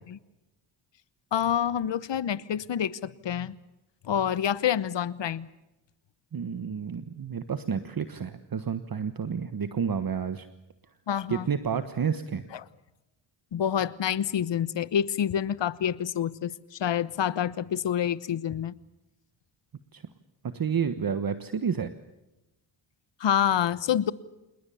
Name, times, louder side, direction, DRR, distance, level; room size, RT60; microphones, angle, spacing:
voice 1, 1.3-3.6 4.0-5.5 11.1-11.5 13.5-18.7 23.2-24.1, left 9 dB, 65° left, 18 dB, 1.1 m, -27 dB
voice 2, 6.3-10.5 11.3-12.4 19.9-20.0 20.4-21.9, right 7 dB, 45° right, 11 dB, 1.3 m, -30 dB
27.5 x 20.5 x 7.1 m, 0.99 s
cardioid pair, 75°, 48 cm